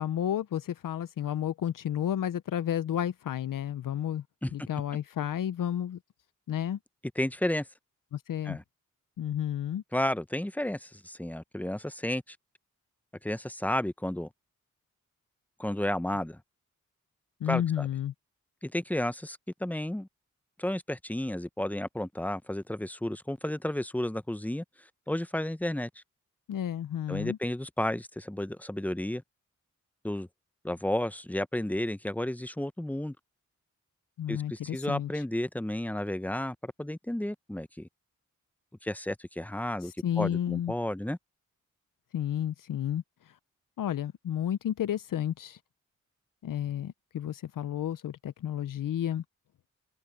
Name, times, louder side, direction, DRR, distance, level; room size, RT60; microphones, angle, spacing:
voice 1, 0.0-4.2 4.5-6.0 6.5-6.8 8.1-8.6 9.2-9.8 17.4-18.1 26.5-27.4 34.2-35.2 39.8-40.7 42.1-43.3 43.8-45.6 46.4-49.2, left 10 dB, 80° left, 0.7 m, -31 dB
voice 2, 7.2-7.7 8.4-8.6 9.9-12.4 13.2-14.3 15.6-16.4 17.5-17.9 18.6-20.1 20.6-24.6 25.1-25.9 27.1-29.2 30.0-30.3 30.6-33.1 34.3-37.9 38.8-39.9 40.2-41.2, left 1 dB, 5° left, 0.8 m, -32 dB
cardioid pair, 45°, 32 cm